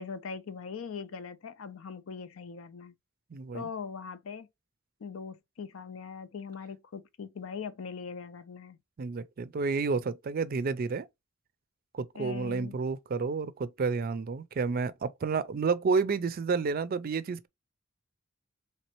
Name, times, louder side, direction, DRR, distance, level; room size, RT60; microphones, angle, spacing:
voice 1, 0.0-3.0 3.5-4.5 5.0-8.8 12.1-12.8, left 6 dB, 80° left, 0.5 m, -41 dB
voice 2, 3.3-3.7 9.0-11.1 11.9-17.5, right 4 dB, 50° right, 0.4 m, -30 dB
4.2 x 3.2 x 2.9 m
head